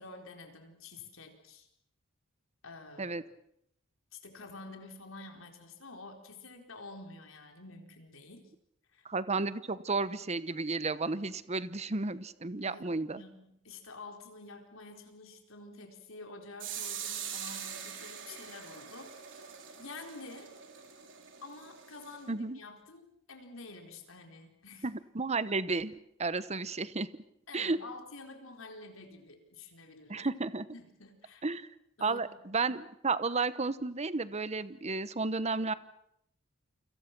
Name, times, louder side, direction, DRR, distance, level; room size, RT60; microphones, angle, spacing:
voice 1, 0.0-1.7 2.6-3.2 4.1-8.5 8.9-9.0 12.6-12.9 13.1-20.5 21.4-24.9 27.5-30.3 30.7-31.5 32.0-32.4, left 3 dB, 70° left, 4 dB, 4.4 m, -49 dB
voice 2, 9.0-13.2 22.3-22.6 24.8-25.9 26.2-27.1 27.5-27.8 30.1-30.6 31.4-31.7 32.0-35.7, right 3 dB, 30° right, 15 dB, 1.0 m, -32 dB
sound 1, 16.6-22.2, right 8 dB, 65° right, 4.3 m, -43 dB
29.5 x 26.0 x 6.1 m, 0.75 s
head